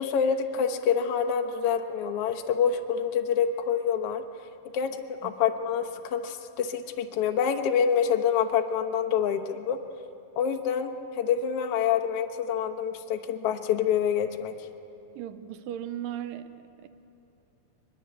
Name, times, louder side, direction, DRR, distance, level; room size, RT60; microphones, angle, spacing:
voice 1, 0.0-4.2 4.7-5.0 5.2-9.8 10.4-14.5, left 7 dB, 85° left, 4 dB, 1.3 m, -26 dB
voice 2, 15.2-16.9, right 11 dB, 75° right, 11 dB, 2.2 m, -37 dB
23.0 x 21.0 x 8.1 m, 3.0 s
omnidirectional pair, 4.4 m